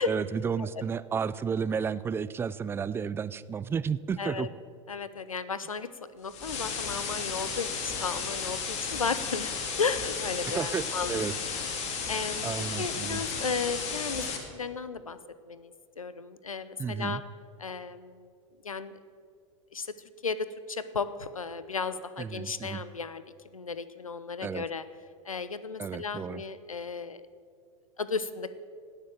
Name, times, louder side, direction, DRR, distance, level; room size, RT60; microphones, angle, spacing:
voice 1, 0.0-4.5 10.4-11.3 12.4-13.2 16.8-17.2 22.2-22.8 24.4-24.7 25.8-26.4, right 6 dB, 15° right, 17 dB, 0.4 m, -32 dB
voice 2, 4.2-4.5 4.9-9.5 9.8-11.2 12.1-12.5 12.8-15.2 15.5-17.2 17.6-18.3 18.6-19.0 19.7-19.9 20.2-23.2 23.5-24.8 25.3-27.2 28.0-28.5, left 5 dB, 90° left, 14 dB, 0.6 m, -34 dB
sound 1, 6.3-14.4, left 5 dB, 40° left, 2.1 m, -34 dB
17.5 x 6.6 x 7.4 m, 2.3 s
figure-of-eight pair, 90°, 17 cm